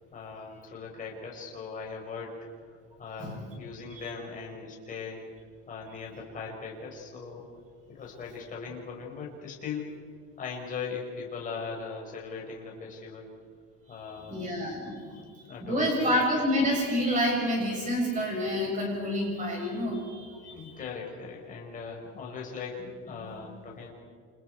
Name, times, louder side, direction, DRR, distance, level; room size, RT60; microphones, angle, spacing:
voice 1, 0.1-2.3 2.7-5.3 5.7-7.4 7.9-9.9 10.4-13.3 13.9-14.4 14.8-16.1 20.5-23.9, left 5 dB, 20° left, -2 dB, 5.0 m, -39 dB
voice 2, 14.3-15.2 15.6-20.8 23.1-23.3, equal, 20° right, -1 dB, 7.3 m, -28 dB
29.5 x 27.5 x 4.7 m, 2.1 s
cardioid pair, 175°, 38 cm